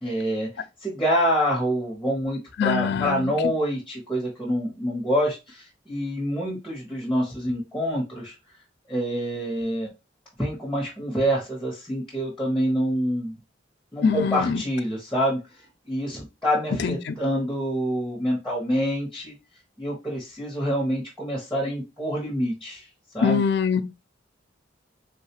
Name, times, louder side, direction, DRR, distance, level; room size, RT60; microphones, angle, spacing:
voice 1, 0.0-8.3 8.9-9.9 10.4-13.4 13.9-15.4 15.9-19.3 19.8-22.9 23.1-23.4, equal, 5° left, 1.0 m, -26 dB
voice 2, 2.6-3.3 14.0-14.6 16.8-17.1 23.2-23.8, left 6 dB, 65° left, 0.4 m, -23 dB
3.7 x 2.3 x 2.8 m
head